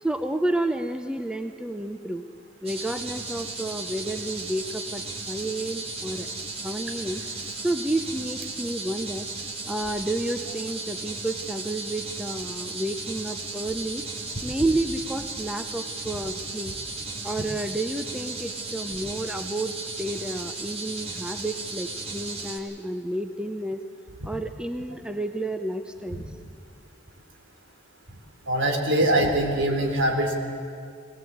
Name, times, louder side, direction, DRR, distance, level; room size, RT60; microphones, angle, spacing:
voice 1, 0.0-2.2 2.6-6.3 6.6-7.2 7.6-9.3 9.7-14.0 14.4-16.7 17.2-23.8 24.2-26.2, right 1 dB, 5° right, 7 dB, 0.6 m, -30 dB
sound 1, 2.6-22.6, right 3 dB, 30° right, 2.1 m, -35 dB
voice 2, 28.5-30.3, right 1 dB, 65° right, 2 dB, 3.6 m, -23 dB
21.5 x 18.5 x 8.6 m, 2.3 s
head